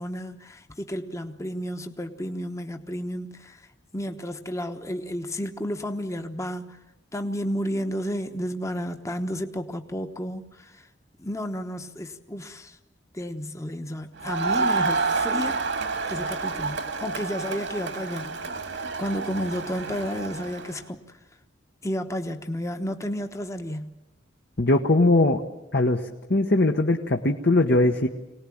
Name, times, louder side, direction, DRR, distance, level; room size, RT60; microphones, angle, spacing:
voice 1, 0.0-3.6 3.9-6.8 7.1-10.9 11.2-12.8 13.1-15.6 16.1-18.3 18.6-21.0 21.8-23.9, equal, 15° left, 6 dB, 1.1 m, -32 dB
Crowd, 14.2-20.8, right 4 dB, 70° right, 2.1 m, -29 dB
voice 2, 24.6-25.4 25.7-26.0 26.3-28.1, left 2 dB, 55° left, 3 dB, 1.2 m, -20 dB
24.5 x 18.5 x 8.6 m, 0.99 s
head